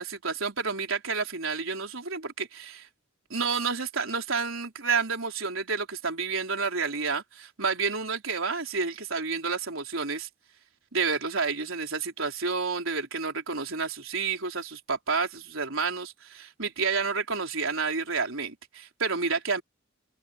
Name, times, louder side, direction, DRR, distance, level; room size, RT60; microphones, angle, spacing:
voice 1, 0.0-2.9 3.3-10.3 10.9-19.6, right 4 dB, 70° right, 4.2 m, -30 dB
head